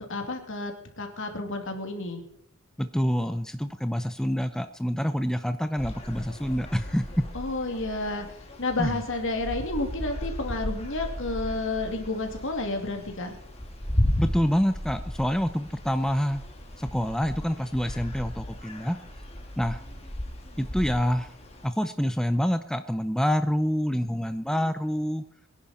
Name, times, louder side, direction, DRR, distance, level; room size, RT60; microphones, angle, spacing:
voice 1, 0.1-2.2 7.3-13.4, left 2 dB, 60° left, 4 dB, 2.5 m, -31 dB
voice 2, 2.8-7.3 8.8-9.0 14.2-16.4 16.8-19.0 19.6-19.8 20.6-21.3 21.6-25.2, equal, 5° left, 10 dB, 0.5 m, -27 dB
sound 1, 5.8-21.7, equal, 30° left, 2.3 m, -35 dB
23.0 x 10.5 x 4.3 m, 0.75 s
head